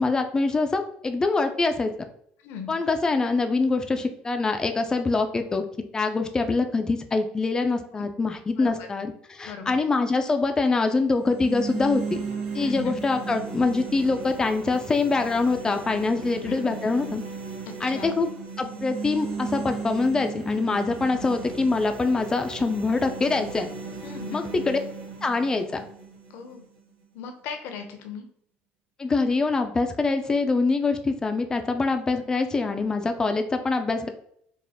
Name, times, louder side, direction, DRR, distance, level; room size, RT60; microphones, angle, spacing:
voice 1, 0.0-1.9 2.7-5.6 5.9-12.2 12.5-17.2 17.8-18.3 18.6-23.7 24.3-24.8 25.2-25.8 29.0-34.1, left 3 dB, 20° left, 6 dB, 0.4 m, -24 dB
voice 2, 2.4-2.8 7.9-8.0 8.6-8.9 9.4-9.9 12.5-13.0 16.2-16.6 17.8-18.2 24.0-24.5 26.3-26.7 27.1-28.3, left 6 dB, 75° left, 6 dB, 0.8 m, -38 dB
sound 1, 11.1-27.1, right 5 dB, 80° right, 1.4 m, -36 dB
4.4 x 2.4 x 3.5 m, 0.67 s
cardioid pair, 120°, 4 cm